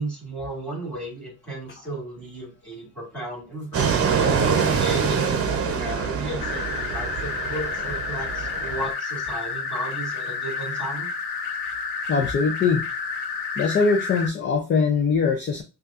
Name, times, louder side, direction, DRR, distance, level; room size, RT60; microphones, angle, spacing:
voice 1, 0.0-3.9 4.7-11.1, right 1 dB, 5° left, -2 dB, 2.3 m, -34 dB
Fixed-wing aircraft airplane, 3.7-8.9, right 6 dB, 35° right, 0.8 m, -25 dB
sound 1, 6.4-14.3, left 5 dB, 75° left, 0.9 m, -30 dB
voice 2, 12.1-12.8 13.6-15.6, left 5 dB, 30° left, 4 dB, 0.5 m, -22 dB
5.6 x 2.5 x 2.5 m, 0.32 s
cardioid pair, 135°, 39 cm